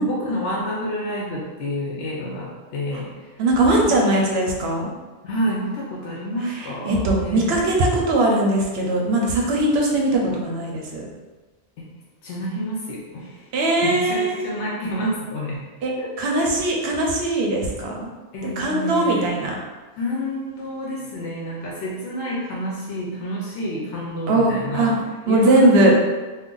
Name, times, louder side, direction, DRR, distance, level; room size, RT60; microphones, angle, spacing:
voice 1, 0.0-3.4 3.9-4.4 5.2-7.5 12.2-13.4 13.8-15.6 16.0-16.4 18.3-19.5 20.0-25.0 25.3-25.9, equal, 80° left, -4 dB, 0.9 m, -29 dB
voice 2, 3.4-4.9 6.6-11.0 13.5-14.4 15.8-15.9 16.2-18.1 18.4-19.5 24.3-24.9 25.3-25.9, right 2 dB, 65° right, -1 dB, 0.9 m, -20 dB
2.5 x 2.4 x 3.7 m, 1.3 s
omnidirectional pair, 1.2 m